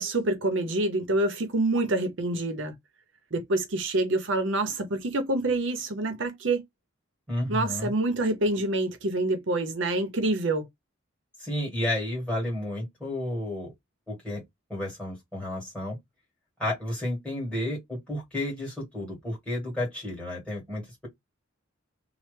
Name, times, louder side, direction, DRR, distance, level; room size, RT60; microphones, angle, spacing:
voice 1, 0.0-2.7 3.3-6.6 7.5-10.7, right 2 dB, 65° right, 0.7 m, -27 dB
voice 2, 7.3-7.9 11.4-13.7 14.1-14.4 14.7-16.0 16.6-21.1, left 1 dB, 5° left, 1.8 m, -31 dB
3.1 x 2.1 x 3.2 m
head